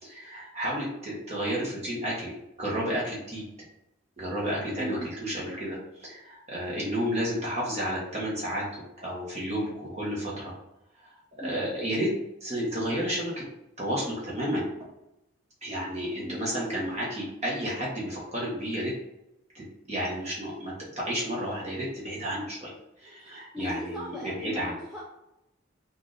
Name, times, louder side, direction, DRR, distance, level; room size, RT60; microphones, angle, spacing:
voice 1, 0.0-2.3 2.6-3.4 4.2-8.6 9.0-10.5 11.0-12.1 12.4-13.4 13.8-14.7 15.6-18.9 19.5-22.7 23.0-24.8, equal, 35° right, -5 dB, 1.1 m, -31 dB
voice 2, 4.7-5.1 11.4-11.6 16.2-16.6 23.2-25.0, equal, 5° right, -7 dB, 0.4 m, -39 dB
3.4 x 2.6 x 2.6 m, 0.89 s
head